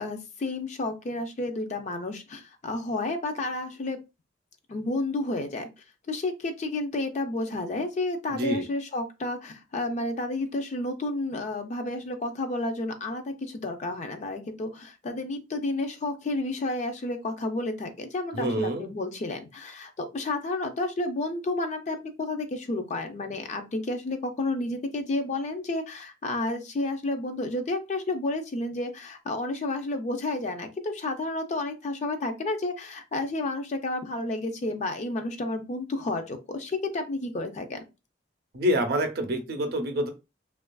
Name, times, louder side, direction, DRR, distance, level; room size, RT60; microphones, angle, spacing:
voice 1, 0.0-4.0 4.7-5.7 6.1-37.8, left 2 dB, 40° left, 7 dB, 0.4 m, -31 dB
voice 2, 8.3-8.6 18.3-18.9 38.5-40.1, equal, 55° right, 5 dB, 0.5 m, -27 dB
2.6 x 2.4 x 2.2 m, 0.26 s
head